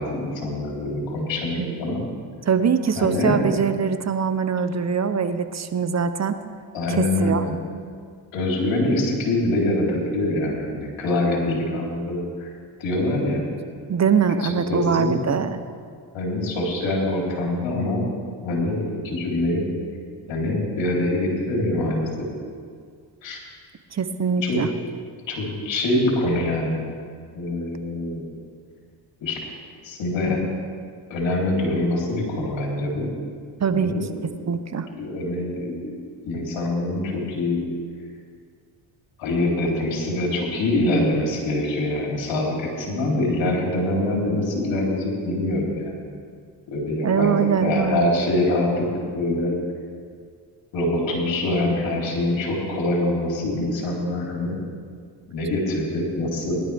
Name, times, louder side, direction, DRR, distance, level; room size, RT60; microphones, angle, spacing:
voice 1, 0.0-2.0 2.9-3.5 6.7-7.6 8.3-12.5 12.8-13.4 14.4-15.4 16.1-18.0 18.4-19.7 20.3-22.1 23.2-23.4 24.4-24.6 25.3-26.8 27.3-28.2 29.2-29.3 29.8-30.4 31.1-33.1 33.7-34.3 34.9-37.6 39.2-46.0 46.7-48.9 49.1-49.5 50.7-54.5 55.3-56.6, left 1 dB, 80° left, -2 dB, 3.7 m, -24 dB
voice 2, 2.5-6.4 6.9-7.4 13.9-15.6 23.9-24.7 33.6-33.9 34.2-34.9 47.0-48.1, right 6 dB, 40° right, 10 dB, 0.9 m, -22 dB
19.5 x 12.0 x 3.5 m, 2.1 s
supercardioid pair, 70°, 44 cm